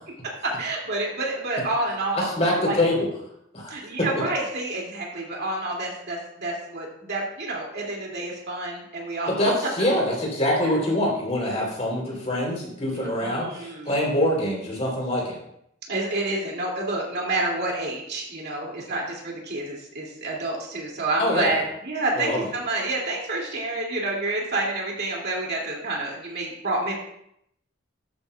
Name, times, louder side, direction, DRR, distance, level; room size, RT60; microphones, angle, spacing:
voice 1, 0.4-2.8 3.7-9.3 11.6-11.7 12.9-14.0 15.9-26.9, right 2 dB, 60° right, -2 dB, 2.4 m, -29 dB
voice 2, 2.1-3.1 3.5-3.7 9.3-15.4 21.2-21.6 22.2-22.4, left 1 dB, 35° left, -2 dB, 3.3 m, -24 dB
12.0 x 8.4 x 2.3 m, 0.75 s
head